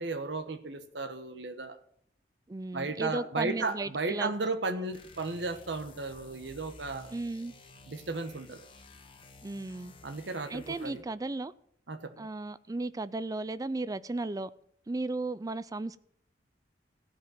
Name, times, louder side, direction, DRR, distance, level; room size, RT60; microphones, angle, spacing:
voice 1, 0.0-1.8 2.7-7.1 7.9-8.6 10.0-11.0 11.9-12.3, right 3 dB, 75° right, 1.1 m, -35 dB
voice 2, 2.5-4.3 4.7-4.9 7.1-7.5 9.4-9.9 10.5-11.5 12.2-14.5 14.9-16.0, right 2 dB, 20° right, 0.4 m, -35 dB
sound 1, 4.9-11.2, left 2 dB, 30° left, 1.2 m, -53 dB
15.0 x 5.2 x 7.7 m
head